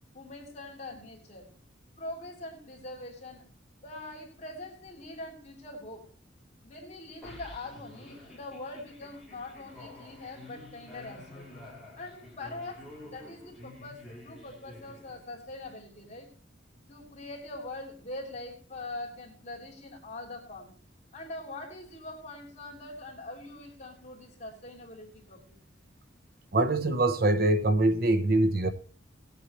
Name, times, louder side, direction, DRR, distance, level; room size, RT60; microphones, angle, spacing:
voice 1, 0.1-1.5 2.0-3.4 3.8-6.1 6.6-11.5 12.0-16.3 16.9-20.7 21.1-25.5, left 2 dB, 35° left, 3.2 m, -43 dB
sound 1, 7.2-15.5, left 1 dB, ahead, 4.3 m, -49 dB
voice 2, 26.5-28.7, right 2 dB, 50° right, 0.9 m, -24 dB
20.0 x 8.4 x 3.1 m
head